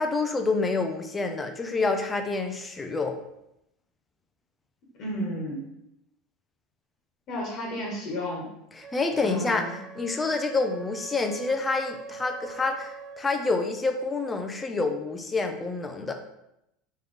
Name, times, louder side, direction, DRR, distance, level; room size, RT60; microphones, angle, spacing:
voice 1, 0.0-3.2 8.7-16.1, left 3 dB, 20° left, 5 dB, 0.6 m, -28 dB
voice 2, 5.0-5.6 7.3-8.4 9.2-9.8, equal, 50° left, -3 dB, 1.4 m, -32 dB
Wind instrument woodwind instrument, 8.8-13.3, right 4 dB, 30° right, 0.4 m, -44 dB
3.8 x 3.1 x 3.4 m, 0.82 s
hypercardioid pair, 95°, 0 cm